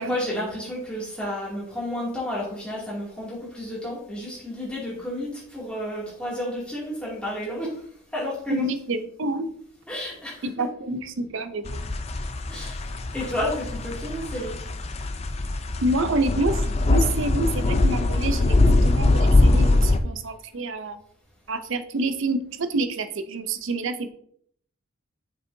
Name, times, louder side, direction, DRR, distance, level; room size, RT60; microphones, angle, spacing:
voice 1, 0.0-7.8 8.1-8.7 9.9-10.5 12.5-12.8 13.1-14.6, left 1 dB, 5° left, -6 dB, 2.4 m, -31 dB
voice 2, 8.5-9.5 10.4-11.8 15.8-18.6 18.8-21.0 21.5-24.1, right 2 dB, 60° right, 10 dB, 0.5 m, -28 dB
sound 1, 11.7-20.0, left 2 dB, 30° left, 0.4 m, -22 dB
7.0 x 5.4 x 2.7 m, 0.63 s
head